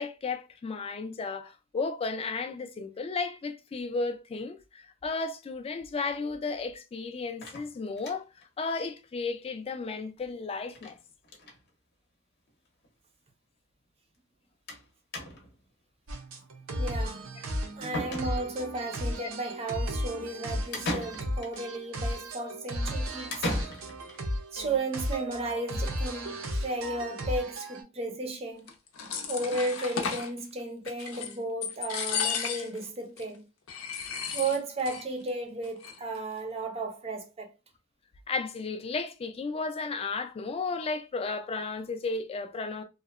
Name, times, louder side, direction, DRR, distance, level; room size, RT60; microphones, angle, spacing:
voice 1, 0.0-8.3 8.6-11.0 19.2-19.3 38.3-42.8, left 4 dB, 30° left, 0.3 m, -34 dB
sound 1, 7.4-8.4 8.8-8.9 9.2-9.3 9.5-9.6 10.8-11.0 11.2-11.6 12.5-12.6 12.8-12.9 14.7-14.9 15.1-15.6 17.4-17.5 17.9-18.7 20.7-21.6 23.3-24.2, left 1 dB, 55° left, 0.7 m, -36 dB
sound 2, 16.1-27.8, equal, 75° right, 0.6 m, -34 dB
voice 2, 16.8-17.3 17.8-23.5 24.5-28.7 29.3-33.5 34.3-37.5, right 2 dB, 30° right, 0.5 m, -34 dB
sound 3, 28.7-30.3 30.8-31.4 31.6-32.8 33.2-33.3 33.7-35.0 35.3-35.4 35.6-36.2, left 7 dB, 90° left, 0.6 m, -34 dB
2.8 x 2.1 x 2.4 m
head